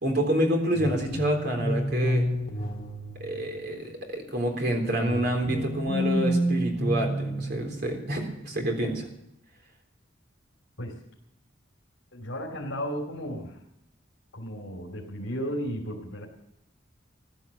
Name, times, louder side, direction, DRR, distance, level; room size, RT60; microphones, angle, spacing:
voice 1, 0.0-2.3 3.2-9.1, right 1 dB, 55° right, 2 dB, 3.7 m, -28 dB
sound 1, 0.8-3.9 5.0-8.0, equal, 30° left, 2.2 m, -29 dB
voice 2, 12.1-13.6 14.3-16.3, equal, 70° left, -2 dB, 2.9 m, -34 dB
15.5 x 11.5 x 7.2 m, 0.79 s
head